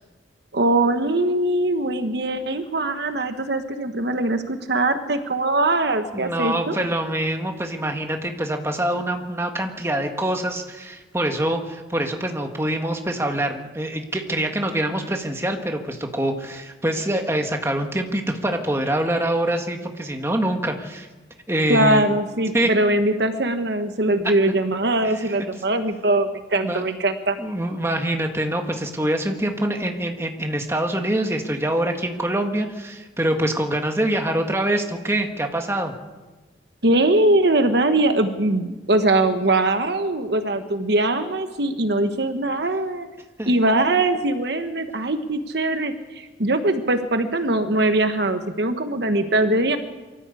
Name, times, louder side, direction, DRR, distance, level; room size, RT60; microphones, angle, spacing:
voice 1, 0.5-6.8 21.7-27.4 36.8-43.1 43.5-49.8, right 2 dB, 60° right, 8 dB, 1.3 m, -21 dB
voice 2, 6.1-21.1 21.5-22.1 22.5-22.7 25.0-25.5 26.6-26.8 27.4-35.9 43.4-43.5, right 1 dB, 15° right, 4 dB, 1.7 m, -25 dB
23.5 x 14.0 x 8.3 m, 1.2 s
head